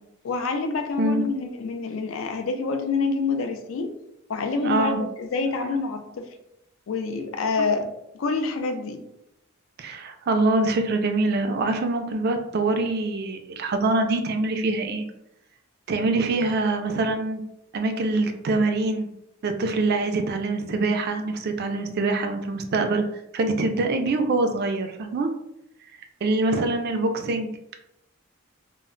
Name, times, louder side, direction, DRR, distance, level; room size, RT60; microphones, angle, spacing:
voice 1, 0.2-3.9 4.3-6.3 6.9-7.9 8.2-9.0, left 4 dB, 65° left, 6 dB, 0.4 m, -27 dB
voice 2, 4.6-5.0 9.8-15.1 15.9-17.4 17.7-19.1 19.4-23.0 23.3-25.3 26.2-27.5, right 2 dB, 50° right, 6 dB, 0.3 m, -24 dB
2.1 x 2.0 x 3.6 m, 0.83 s
head